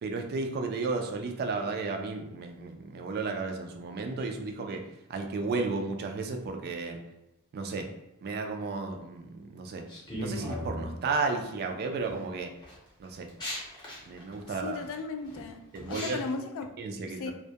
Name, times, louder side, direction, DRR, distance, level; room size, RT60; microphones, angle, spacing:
voice 1, 0.0-4.8 5.1-7.0 7.5-7.9 8.2-9.8 10.2-12.5 13.0-13.3 14.1-14.8 15.7-16.2 16.8-17.3, right 4 dB, 45° right, 4 dB, 0.3 m, -33 dB
sound 1, 9.9-11.0 11.7-12.1 12.6-16.3, left 1 dB, 20° left, 0.7 m, -38 dB
voice 2, 14.6-15.6 15.9-16.7 17.1-17.3, left 4 dB, 60° left, 6 dB, 0.3 m, -36 dB
2.2 x 2.1 x 2.7 m, 0.93 s
head